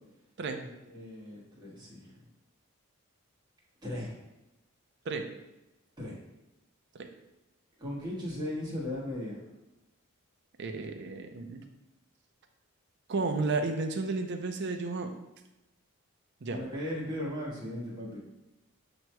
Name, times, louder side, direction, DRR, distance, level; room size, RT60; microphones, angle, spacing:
voice 1, 0.6-2.2 3.8-4.2 6.0-6.1 7.8-9.4 16.5-18.2, left 1 dB, 20° right, -6 dB, 1.2 m, -37 dB
voice 2, 10.6-11.6 13.1-15.1 16.4-16.6, right 3 dB, 50° right, 5 dB, 0.5 m, -32 dB
7.8 x 2.9 x 2.2 m, 0.96 s
head